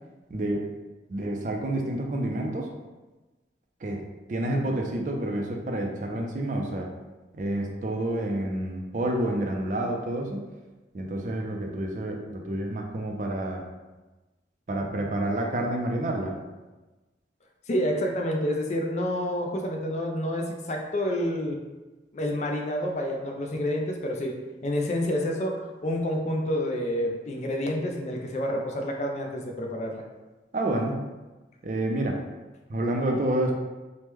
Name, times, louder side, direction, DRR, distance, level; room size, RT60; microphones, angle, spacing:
voice 1, 0.3-0.7 1.1-2.7 3.8-6.9 7.3-10.4 10.9-13.6 14.7-16.3 30.5-31.0 31.6-32.2 32.7-33.5, right 1 dB, 45° right, 1 dB, 0.4 m, -29 dB
voice 2, 17.7-21.6 22.1-24.4 24.6-30.0, equal, 40° left, 2 dB, 0.4 m, -28 dB
3.0 x 2.1 x 3.4 m, 1.2 s
head